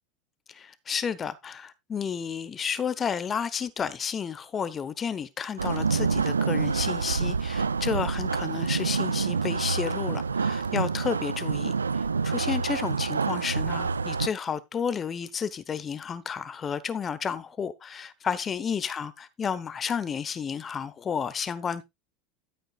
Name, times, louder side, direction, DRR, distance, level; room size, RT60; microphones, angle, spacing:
voice 1, 0.5-21.8, left 7 dB, 30° left, 1.0 m, -32 dB
sound 1, 5.6-14.3, right 5 dB, 85° right, 0.4 m, -27 dB
13.0 x 7.9 x 2.4 m
figure-of-eight pair, 80°, 0 cm